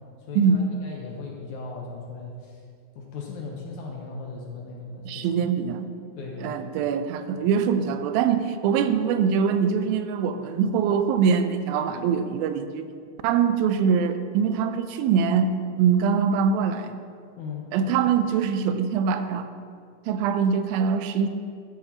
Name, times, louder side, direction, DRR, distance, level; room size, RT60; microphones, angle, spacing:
voice 1, 0.2-2.6 3.0-5.4 6.2-6.6 17.4-17.7, left 4 dB, 70° left, -1 dB, 2.0 m, -37 dB
voice 2, 5.1-5.9 6.4-12.9 13.2-15.5 15.8-17.0 17.7-19.5 20.1-21.3, right 6 dB, 90° right, 10 dB, 2.4 m, -23 dB
13.0 x 8.4 x 2.9 m, 2.3 s
omnidirectional pair, 4.1 m